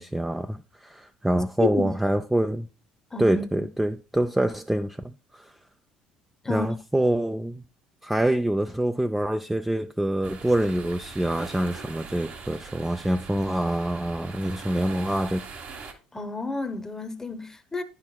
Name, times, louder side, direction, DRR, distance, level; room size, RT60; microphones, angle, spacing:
voice 1, 0.0-2.7 3.2-5.5 6.5-7.6 8.0-15.5, right 1 dB, 5° right, 0.4 m, -26 dB
voice 2, 3.1-3.7 6.4-6.8 16.1-17.8, left 4 dB, 15° left, 0.9 m, -30 dB
sound 1, 10.2-15.9, right 5 dB, 55° right, 1.3 m, -41 dB
10.5 x 5.8 x 2.2 m
hypercardioid pair, 65°, 3 cm